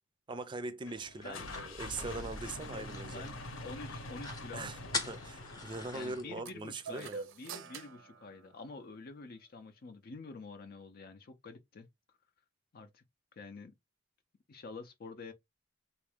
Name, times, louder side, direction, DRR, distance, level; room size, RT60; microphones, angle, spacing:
voice 1, 0.3-3.2 4.5-4.8 5.0-7.2, right 3 dB, 25° right, 0.5 m, -41 dB
sound 1, 0.8-6.4, left 2 dB, 80° left, 0.9 m, -45 dB
sound 2, 1.2-3.6 3.9-4.0 4.2-4.5 4.9-6.2, left 3 dB, 20° left, 0.8 m, -42 dB
voice 2, 2.7-3.4 3.6-4.7 5.9-11.9 12.7-13.0 13.4-13.7 14.5-15.3, left 3 dB, 50° left, 0.5 m, -48 dB
sound 3, 6.4-9.1, right 5 dB, 70° right, 0.6 m, -47 dB
3.5 x 2.5 x 3.3 m
head